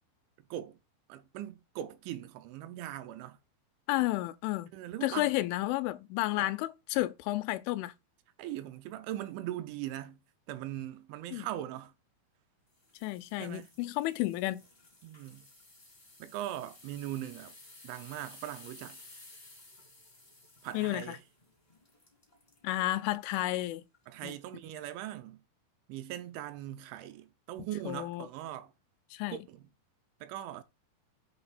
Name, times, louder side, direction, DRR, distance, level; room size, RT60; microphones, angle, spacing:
voice 1, 0.5-0.8 1.1-3.4 4.7-5.4 6.4-6.5 8.4-10.2 10.5-11.9 13.4-13.7 15.0-15.5 16.2-17.5 17.8-19.0 20.6-21.2 24.1-25.4 25.9-28.7 29.3-29.7 30.2-30.6, right 13 dB, 85° right, 2.9 m, -40 dB
voice 2, 3.9-4.7 5.0-7.9 11.3-11.5 13.0-14.6 20.7-21.2 22.6-23.8 24.2-24.3 27.9-28.3 29.1-29.4, left 17 dB, 90° left, 3.0 m, -31 dB
sound 1, 12.8-22.7 23.2-23.4 23.9-24.0, left 2 dB, 50° left, 0.4 m, -56 dB
8.1 x 2.9 x 4.1 m
omnidirectional pair, 5.4 m